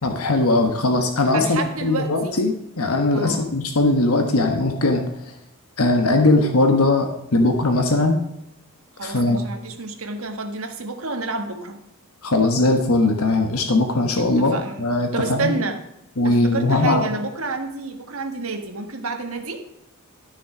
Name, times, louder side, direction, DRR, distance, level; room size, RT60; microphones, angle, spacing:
voice 1, 0.0-5.0 5.8-8.2 9.0-9.4 12.2-15.6 16.2-17.0, left 2 dB, 75° left, 4 dB, 1.3 m, -20 dB
voice 2, 1.3-2.3 3.1-3.5 9.0-11.8 14.2-14.8 15.1-15.8 16.2-19.6, right 3 dB, 70° right, 5 dB, 1.6 m, -29 dB
12.5 x 6.5 x 5.0 m, 0.84 s
head